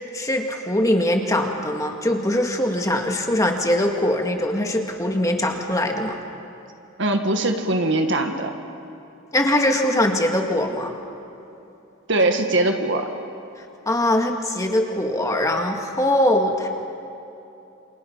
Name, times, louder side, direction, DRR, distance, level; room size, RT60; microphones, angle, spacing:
voice 1, 0.1-6.2 9.3-10.9 13.9-16.7, left 1 dB, 15° left, 2 dB, 2.0 m, -22 dB
voice 2, 7.0-8.5 12.1-13.1, right 2 dB, 60° right, 5 dB, 1.9 m, -21 dB
28.5 x 27.5 x 5.8 m, 2.8 s
head